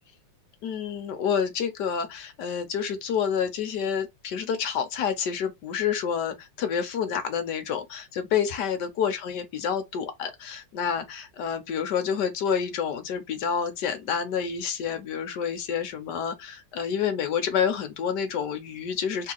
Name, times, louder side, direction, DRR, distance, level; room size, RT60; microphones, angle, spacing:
voice 1, 0.6-19.3, left 7 dB, 65° left, 1.2 m, -28 dB
3.6 x 2.8 x 3.8 m
omnidirectional pair, 2.3 m